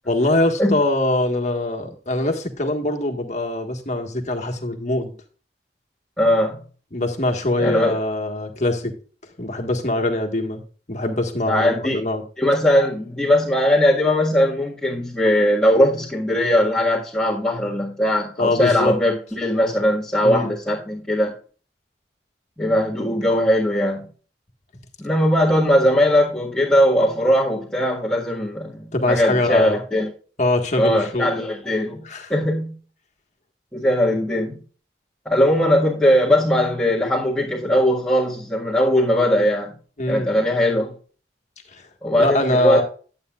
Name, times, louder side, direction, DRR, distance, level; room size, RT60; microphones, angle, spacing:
voice 1, 0.0-5.1 6.9-8.9 9.4-10.6 10.9-12.2 18.4-18.9 20.2-20.5 28.9-29.8 30.4-31.3 32.1-32.3 40.0-40.3 41.7-41.8 42.2-42.8, left 2 dB, 40° left, 4 dB, 1.6 m, -23 dB
voice 2, 6.2-6.6 7.6-8.0 11.5-12.1 12.4-21.3 22.6-24.1 25.0-30.1 30.8-32.8 33.7-34.6 35.3-39.7 40.1-40.9 42.0-42.8, equal, 5° left, -9 dB, 1.8 m, -19 dB
11.0 x 8.7 x 2.4 m, 0.39 s
head